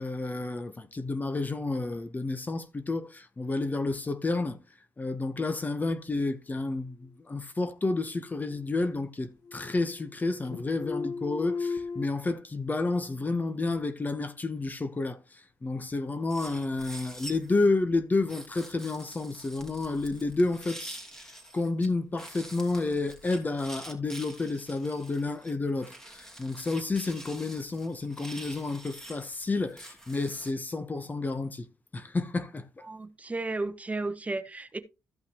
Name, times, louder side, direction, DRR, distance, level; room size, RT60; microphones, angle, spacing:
voice 1, 0.0-4.6 5.0-21.3 21.5-31.7 31.9-32.9, left 3 dB, 25° left, 1.0 m, -30 dB
sound 1, 8.0-9.0 9.3-10.2 10.4-12.1, left 4 dB, 85° left, 1.4 m, -36 dB
sound 2, 16.3-17.6 18.3-21.9 22.2-30.5, right 1 dB, 10° left, 2.9 m, -46 dB
voice 2, 32.9-34.8, right 2 dB, 20° right, 1.1 m, -33 dB
14.0 x 5.7 x 3.0 m
cardioid pair, 80°, 6 cm